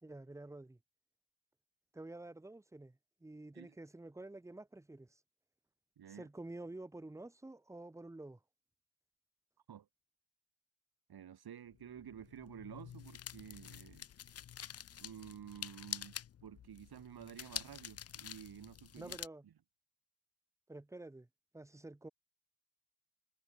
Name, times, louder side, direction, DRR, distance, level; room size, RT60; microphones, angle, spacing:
voice 1, 0.0-0.8 1.9-5.2 6.1-8.4 19.0-19.4 20.7-21.3 21.5-22.1, right 2 dB, 5° right, 1.1 m, -49 dB
voice 2, 6.0-6.3 9.7-9.9 11.1-14.1 15.0-16.1 16.4-19.2 19.4-19.5, right 9 dB, 50° right, 4.4 m, -51 dB
sound 1, 11.7-19.3, left 9 dB, 30° left, 0.6 m, -48 dB
cardioid pair, 110°, 49 cm